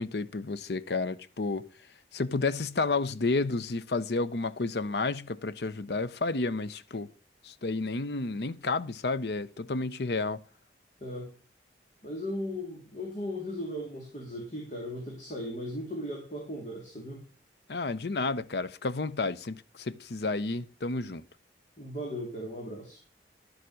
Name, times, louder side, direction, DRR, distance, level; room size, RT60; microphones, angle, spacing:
voice 1, 0.0-1.7 2.1-7.1 7.4-10.4 17.7-21.2, left 3 dB, 70° left, 0.7 m, -31 dB
voice 2, 11.0-11.3 12.0-17.2 21.8-23.0, equal, 45° left, 2.6 m, -37 dB
11.5 x 7.1 x 6.3 m
head